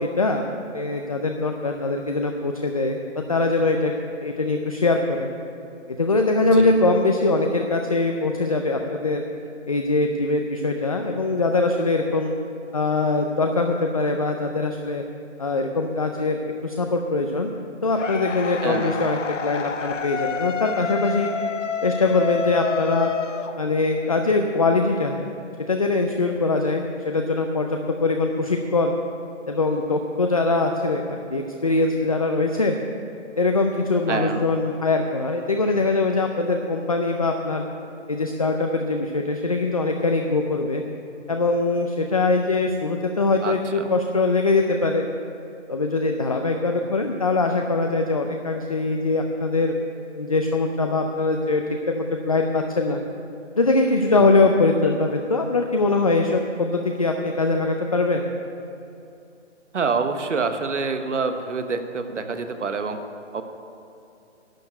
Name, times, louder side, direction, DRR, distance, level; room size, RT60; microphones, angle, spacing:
voice 1, 0.0-3.9 4.2-5.3 5.9-9.2 9.7-12.3 12.7-15.0 15.4-17.5 17.8-21.3 21.8-23.1 23.6-25.2 25.7-28.9 29.5-32.8 33.4-37.6 38.1-40.8 41.3-45.0 45.7-53.0 53.6-58.2, left 3 dB, 30° left, 4 dB, 0.5 m, -22 dB
sound 1, 18.0-24.1, left 6 dB, 90° left, 0.8 m, -29 dB
voice 2, 18.6-19.0 34.1-34.4 43.4-43.5 54.1-54.2 59.7-63.0 63.3-63.4, right 4 dB, 80° right, 8 dB, 1.2 m, -26 dB
11.5 x 6.7 x 9.3 m, 2.7 s
hypercardioid pair, 160°, 36 cm